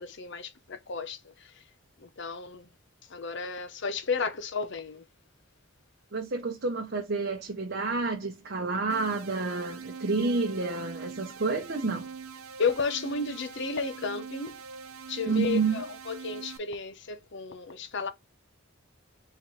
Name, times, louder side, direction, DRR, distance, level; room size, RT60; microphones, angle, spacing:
voice 1, 0.0-1.6 2.0-2.7 3.1-5.0 12.6-14.6 15.1-18.1, left 4 dB, 60° left, 0.8 m, -33 dB
voice 2, 6.1-12.1 15.2-15.8, right 4 dB, 55° right, 0.9 m, -29 dB
sound 1, 8.9-16.6, right 5 dB, 80° right, 0.8 m, -43 dB
4.2 x 3.9 x 3.2 m
head